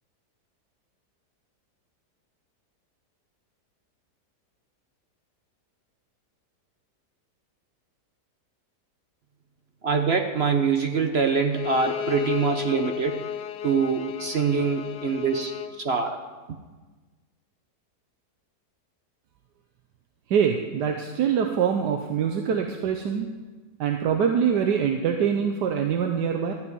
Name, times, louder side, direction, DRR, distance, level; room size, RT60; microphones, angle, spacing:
voice 1, 9.8-13.3 13.6-15.5 15.8-16.2, right 5 dB, 50° right, 6 dB, 0.8 m, -24 dB
Bowed string instrument, 11.5-15.8, left 10 dB, 80° left, 1.2 m, -33 dB
voice 2, 20.3-23.3 23.8-26.5, right 7 dB, 80° right, 4 dB, 1.4 m, -24 dB
13.0 x 6.1 x 9.2 m, 1.3 s
omnidirectional pair, 1.8 m